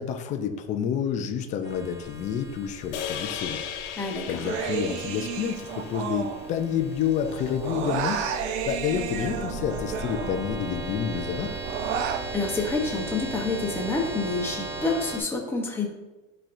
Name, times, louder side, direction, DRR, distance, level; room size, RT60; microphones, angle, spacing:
voice 1, 0.0-3.6 4.3-8.2 8.7-11.5, left 8 dB, 25° left, 6 dB, 0.4 m, -29 dB
sound 1, 1.6-15.2, right 2 dB, 30° right, 1.3 m, -37 dB
sound 2, 2.9-7.3, left 8 dB, 75° left, 1.0 m, -37 dB
voice 2, 4.0-4.4 12.3-15.9, left 3 dB, 5° left, -1 dB, 0.8 m, -28 dB
Human voice, 4.4-7.0 7.3-10.8 11.2-12.3, right 7 dB, 75° right, 0.7 m, -32 dB
9.9 x 4.4 x 2.5 m, 1.1 s
supercardioid pair, 150°, 34 cm